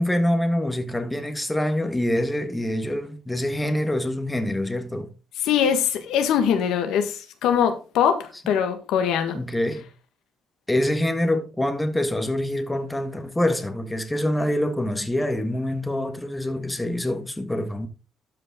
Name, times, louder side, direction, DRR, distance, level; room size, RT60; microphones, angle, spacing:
voice 1, 0.0-5.1 9.3-9.9 10.7-17.9, left 1 dB, 10° left, 1.6 m, -25 dB
voice 2, 5.4-9.4, left 8 dB, 90° left, 1.5 m, -22 dB
12.5 x 5.3 x 3.7 m
cardioid pair, 90°, 0 cm